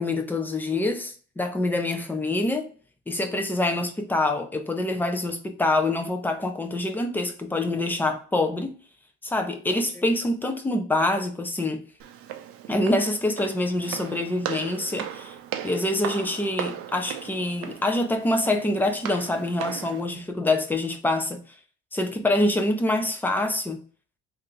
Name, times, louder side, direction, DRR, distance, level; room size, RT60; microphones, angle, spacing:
voice 1, 0.0-2.7 3.1-8.7 9.2-11.8 12.7-15.3 15.6-21.4 21.9-23.8, left 2 dB, 5° left, 0.4 m, -25 dB
Walk footsteps, 12.0-20.0, right 10 dB, 50° right, 0.5 m, -37 dB
3.4 x 2.5 x 3.1 m
cardioid pair, 145°, 29 cm